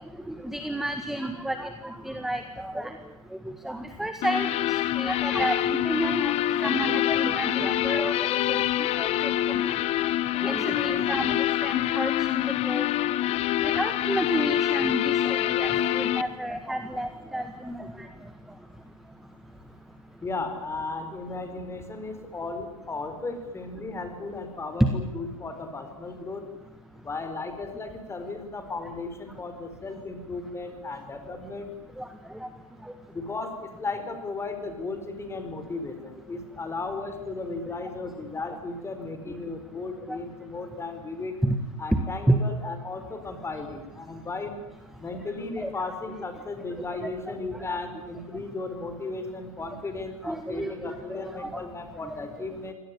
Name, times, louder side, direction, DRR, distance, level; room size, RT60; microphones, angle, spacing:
voice 1, 0.3-3.0 3.5-6.3 6.6-8.2 8.5-9.1 9.5-9.7 10.4-12.1 12.6-12.9 13.6-17.9 32.0-32.1 40.1-40.2 41.4-41.6 42.3-42.4 45.6-45.7 47.7-47.8 50.2-51.6, right 1 dB, ahead, 8 dB, 1.7 m, -31 dB
sound 1, 4.2-16.2, left 13 dB, 35° left, 1.1 m, -26 dB
voice 2, 20.2-26.5 27.0-31.7 33.1-41.4 41.8-44.6 45.0-52.7, left 3 dB, 15° left, 7 dB, 4.5 m, -35 dB
25.0 x 18.0 x 9.9 m, 1.1 s
hypercardioid pair, 105°, 18 cm